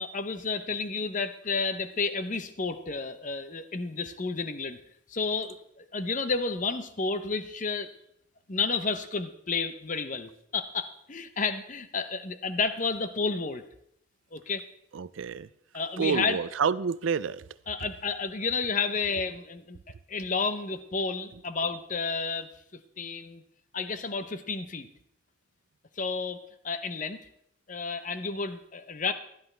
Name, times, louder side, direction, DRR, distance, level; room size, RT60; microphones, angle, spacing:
voice 1, 0.0-4.8 5.1-7.9 8.5-13.6 14.3-14.7 15.7-16.4 17.7-19.8 20.1-23.4 23.7-24.9 26.0-26.4 26.6-27.2 27.7-29.1, left 4 dB, 40° left, 10 dB, 0.7 m, -31 dB
voice 2, 14.9-15.5 16.0-17.4, right 6 dB, 70° right, 17 dB, 0.4 m, -28 dB
17.0 x 11.5 x 3.3 m, 0.72 s
head